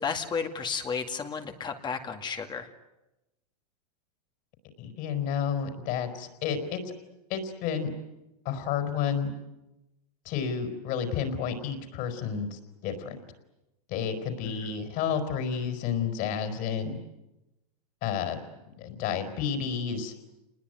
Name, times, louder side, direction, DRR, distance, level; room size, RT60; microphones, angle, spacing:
voice 1, 0.0-2.7 14.4-14.6, left 5 dB, 20° left, 5 dB, 2.2 m, -33 dB
voice 2, 4.8-6.9 7.3-7.9 8.4-9.3 10.2-13.1 13.9-17.0 18.0-18.4 18.8-20.1, left 7 dB, 45° left, 7 dB, 4.8 m, -31 dB
28.0 x 20.5 x 9.3 m, 0.97 s
hypercardioid pair, 125°, 20 cm